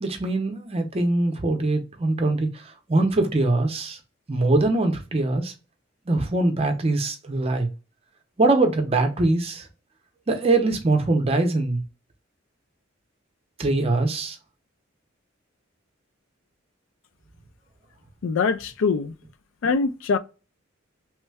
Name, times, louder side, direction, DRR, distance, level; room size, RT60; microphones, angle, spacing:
voice 1, 0.0-2.6 2.9-4.0 4.3-5.5 6.1-7.7 8.4-9.7 10.3-11.8 13.6-14.4, right 2 dB, 30° right, 0.6 m, -22 dB
voice 2, 18.2-19.1 19.6-20.2, left 5 dB, 75° left, 0.3 m, -23 dB
3.1 x 2.1 x 3.3 m
head